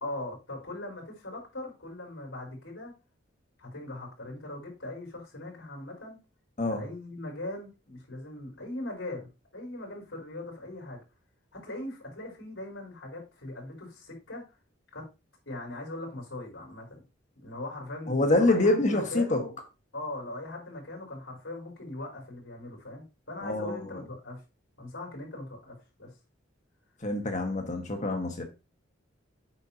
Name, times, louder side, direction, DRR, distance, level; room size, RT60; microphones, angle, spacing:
voice 1, 0.0-2.9 3.6-6.2 6.7-11.0 11.5-14.4 14.9-15.0 15.5-17.0 17.4-19.5 19.9-24.4 24.8-26.1, left 2 dB, 85° left, 4.5 m, -40 dB
voice 2, 18.1-19.4 23.4-24.0 27.0-28.4, left 2 dB, 40° left, 1.7 m, -26 dB
8.4 x 6.6 x 2.9 m
head